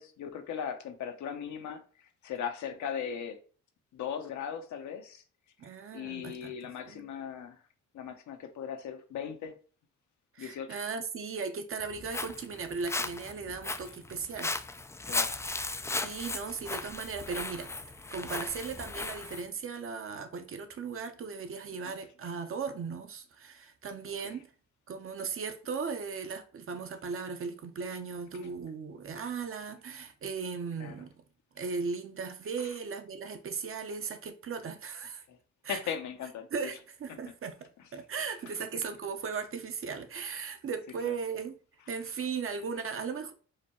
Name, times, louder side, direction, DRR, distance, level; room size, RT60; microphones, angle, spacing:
voice 1, 0.0-1.8 2.2-3.4 3.9-5.2 5.9-7.6 7.9-9.6 10.4-10.7 15.1-15.4 21.8-21.9 24.2-24.4 30.8-30.9 35.3-35.4 35.7-36.7 37.1-37.2 41.0-41.1, left 8 dB, 70° left, 0.9 m, -38 dB
voice 2, 5.6-6.5 6.9-7.1 10.3-14.6 16.0-17.7 18.1-24.5 24.9-31.1 31.5-35.2 35.6-35.8 36.5-41.5 41.9-43.3, right 5 dB, 45° right, 0.8 m, -37 dB
Walk footsteps, 11.8-19.4, left 3 dB, 10° left, 0.3 m, -36 dB
4.9 x 2.2 x 4.2 m
cardioid pair, 90°, 30 cm